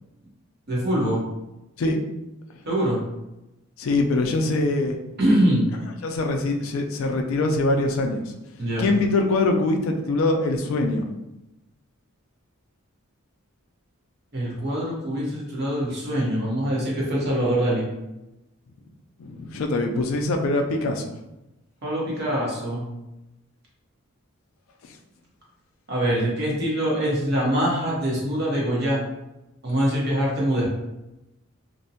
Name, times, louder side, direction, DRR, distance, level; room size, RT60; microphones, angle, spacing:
voice 1, 0.7-1.2 2.7-3.0 5.2-5.7 8.6-8.8 14.3-17.8 21.8-22.9 25.9-29.0 29.6-30.7, right 1 dB, 50° right, -5 dB, 0.9 m, -23 dB
voice 2, 3.8-5.0 6.0-8.2 8.8-11.1 19.2-21.1, left 2 dB, 65° left, 3 dB, 0.3 m, -23 dB
2.6 x 2.1 x 2.7 m, 0.94 s
head